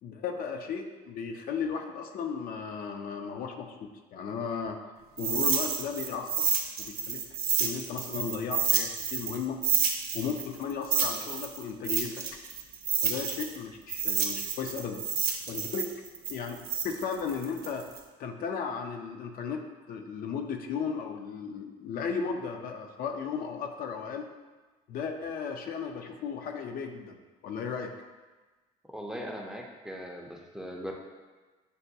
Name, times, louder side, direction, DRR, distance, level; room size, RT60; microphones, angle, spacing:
voice 1, 0.0-4.8 5.2-6.5 6.8-9.6 10.1-12.2 13.0-15.0 15.5-16.0 16.3-17.9 18.2-24.3 24.9-27.2 27.4-27.9, left 6 dB, 60° left, 4 dB, 0.4 m, -35 dB
sound 1, 5.2-9.4 9.6-13.6 13.9-18.0, right 7 dB, 65° right, 0.6 m, -29 dB
voice 2, 28.9-30.9, equal, 5° right, 0 dB, 0.4 m, -39 dB
6.5 x 2.2 x 2.6 m, 1.3 s
cardioid pair, 110°, 17 cm